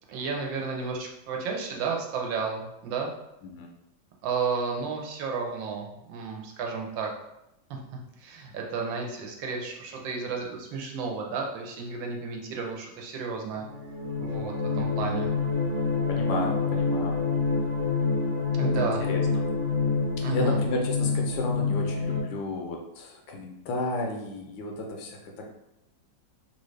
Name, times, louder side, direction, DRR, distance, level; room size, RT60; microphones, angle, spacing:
voice 1, 0.1-3.1 4.2-7.1 7.7-13.7 14.2-15.3 18.5-19.1 20.2-20.6, right 5 dB, 85° right, 1 dB, 1.4 m, -32 dB
sound 1, 13.6-22.2, left 4 dB, 35° right, 0.6 m, -27 dB
voice 2, 16.1-17.2 18.6-19.2 20.3-25.5, left 2 dB, 85° left, 1 dB, 1.4 m, -33 dB
3.6 x 2.6 x 3.1 m, 0.86 s
omnidirectional pair, 2.0 m